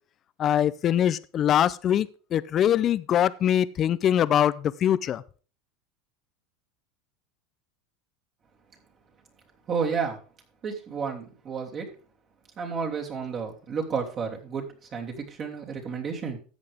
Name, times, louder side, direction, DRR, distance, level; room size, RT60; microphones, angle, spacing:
voice 1, 0.4-2.1 2.3-4.5 4.8-5.2, left 10 dB, 40° left, 0.6 m, -22 dB
voice 2, 9.7-10.2 10.6-11.9 12.6-16.4, right 5 dB, 35° right, 3.1 m, -31 dB
13.5 x 8.1 x 3.5 m
supercardioid pair, 115°, 0 cm